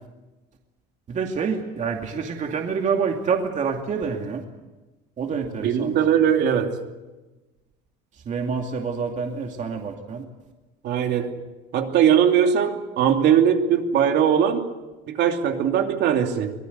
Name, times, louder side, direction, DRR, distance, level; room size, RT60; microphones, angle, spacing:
voice 1, 1.1-4.4 5.2-6.0 8.1-10.3, right 5 dB, 40° right, 2 dB, 2.6 m, -27 dB
voice 2, 5.6-6.7 10.8-11.3 11.7-14.6 15.1-16.5, right 8 dB, 60° right, 4 dB, 2.9 m, -20 dB
24.5 x 18.5 x 8.3 m, 1.1 s
cardioid pair, 125°, 20 cm